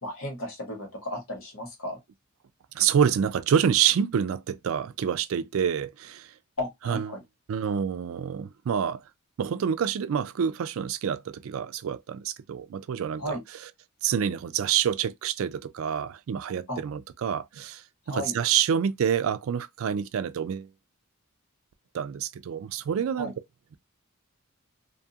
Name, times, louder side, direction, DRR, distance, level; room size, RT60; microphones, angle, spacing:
voice 1, 0.0-2.0 6.6-7.2 13.2-13.4 16.7-16.8 18.1-18.3 23.2-23.3, equal, 80° left, 1.4 m, -34 dB
voice 2, 2.7-6.3 6.9-7.1 7.5-9.0 9.4-13.4 14.0-17.8 18.1-20.7 21.9-23.3, right 8 dB, 70° right, 0.3 m, -27 dB
2.6 x 2.4 x 2.7 m
head